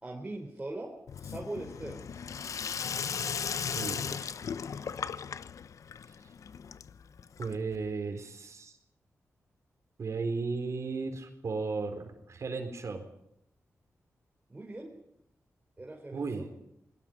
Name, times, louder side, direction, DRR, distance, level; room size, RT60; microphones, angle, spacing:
voice 1, 0.0-2.2 14.5-14.9 15.8-16.5, right 2 dB, 20° right, 0 dB, 3.8 m, -41 dB
Sink (filling or washing), 1.1-7.9, left 7 dB, 75° left, 0.8 m, -37 dB
voice 2, 3.7-4.3 7.4-8.7 10.0-13.0 16.1-16.5, right 4 dB, 65° right, 4 dB, 4.1 m, -35 dB
29.0 x 21.5 x 5.2 m, 0.76 s
wide cardioid pair, 95°, 6 cm